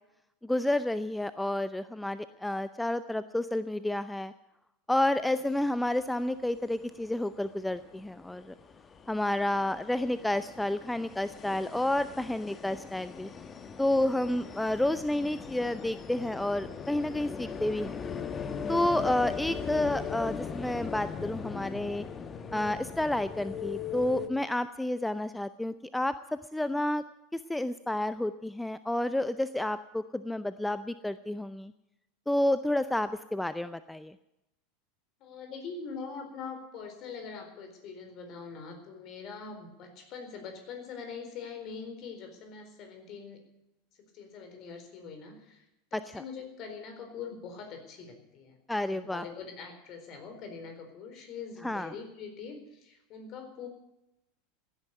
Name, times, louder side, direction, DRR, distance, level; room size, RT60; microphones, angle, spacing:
voice 1, 0.4-4.3 4.9-8.5 9.1-13.3 13.8-18.0 18.7-22.0 22.5-26.2 26.5-27.0 27.3-31.7 32.3-34.1 45.9-46.2 48.7-49.2 51.6-51.9, left 1 dB, 5° left, 14 dB, 0.5 m, -30 dB
sound 1, 5.6-5.7 6.0-24.3, left 6 dB, 25° left, 1.3 m, -40 dB
voice 2, 35.2-43.4 44.1-45.6 45.9-48.6 48.9-53.7, left 5 dB, 45° left, 6 dB, 4.2 m, -43 dB
16.0 x 9.9 x 8.1 m, 0.89 s
figure-of-eight pair, 85°, 0 cm